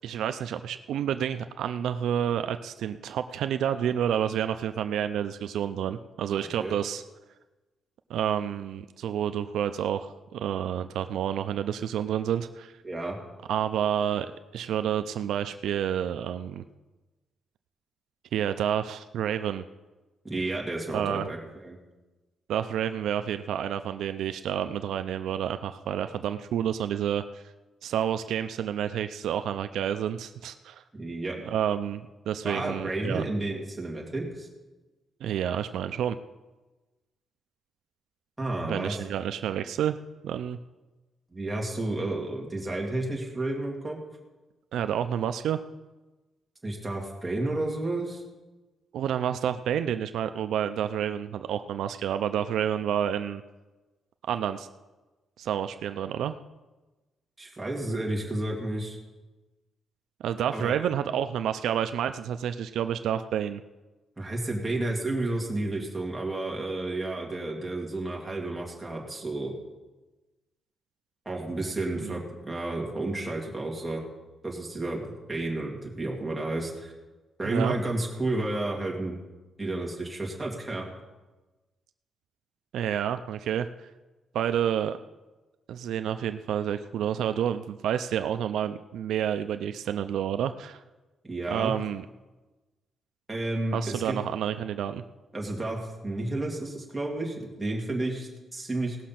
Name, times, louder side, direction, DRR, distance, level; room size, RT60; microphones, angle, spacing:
voice 1, 0.0-7.0 8.1-12.7 13.5-16.6 18.3-19.6 20.9-21.3 22.5-27.2 27.8-30.8 31.4-33.3 35.2-36.2 38.6-40.0 40.2-40.6 44.7-45.6 48.9-53.4 54.3-54.7 55.4-56.4 60.2-63.6 72.0-72.1 77.4-77.8 82.7-83.7 84.3-85.0 85.7-90.8 91.5-92.0 93.7-95.0, right 9 dB, 80° right, 9 dB, 0.4 m, -29 dB
voice 2, 6.4-6.7 12.8-13.2 20.2-21.8 30.9-31.4 32.4-34.5 38.4-38.9 41.3-44.0 46.6-48.2 57.4-59.0 60.5-60.8 64.2-69.5 71.3-74.0 74.4-76.9 77.4-79.2 79.6-80.9 91.2-91.7 93.3-94.2 95.3-99.0, right 2 dB, 10° right, -2 dB, 2.4 m, -31 dB
17.5 x 6.3 x 5.8 m, 1.2 s
cardioid pair, 150°, 0 cm